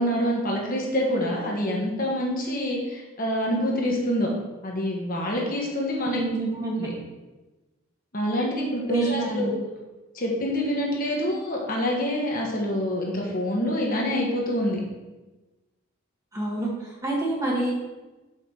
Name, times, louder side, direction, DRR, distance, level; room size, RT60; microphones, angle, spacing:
voice 1, 0.0-4.3 4.6-6.2 6.8-6.9 8.1-9.5 10.1-14.8, equal, 40° left, -2 dB, 1.4 m, -26 dB
voice 2, 6.0-6.9 8.9-9.6 16.3-17.7, right 2 dB, 15° right, -4 dB, 1.6 m, -27 dB
5.8 x 5.0 x 6.3 m, 1.1 s
head